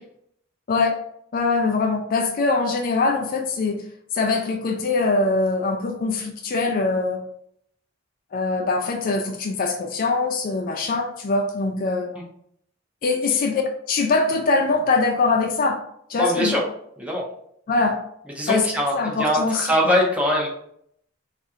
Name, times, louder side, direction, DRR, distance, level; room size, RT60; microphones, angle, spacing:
voice 1, 1.3-3.8 4.1-7.2 8.3-12.1 13.0-13.6 13.9-15.8 16.1-16.5 17.7-18.0 18.5-18.7 18.9-20.0, left 3 dB, 45° left, 2 dB, 0.4 m, -22 dB
voice 2, 16.2-16.6 17.0-17.3 18.4-20.5, equal, 5° right, -3 dB, 0.6 m, -22 dB
3.2 x 2.4 x 2.7 m, 0.70 s
head